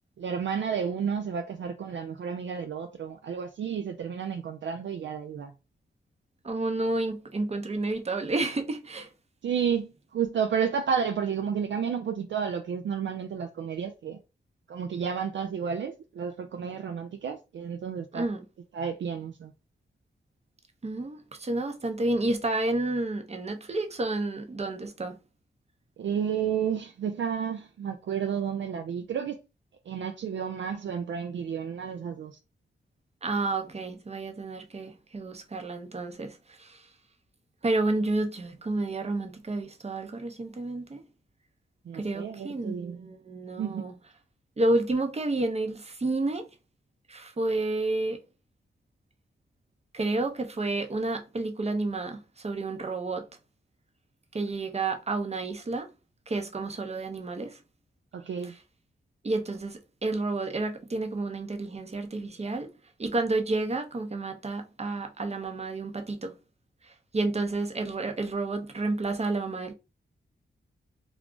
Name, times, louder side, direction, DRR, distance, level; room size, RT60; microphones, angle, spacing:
voice 1, 0.2-5.5 9.4-14.2 14.7-18.3 18.7-19.5 26.0-29.4 29.9-32.4 41.9-43.1 43.6-43.8 58.1-58.5, right 7 dB, 65° right, 0.4 m, -31 dB
voice 2, 6.4-9.1 18.1-18.4 20.8-25.1 33.2-36.8 37.6-41.0 41.9-43.9 44.6-46.5 47.1-48.2 49.9-53.3 54.3-55.9 56.3-57.6 59.2-62.7 63.0-66.3 67.1-69.7, right 2 dB, 30° right, 0.7 m, -30 dB
2.4 x 2.3 x 3.7 m
cardioid pair, 50°, 21 cm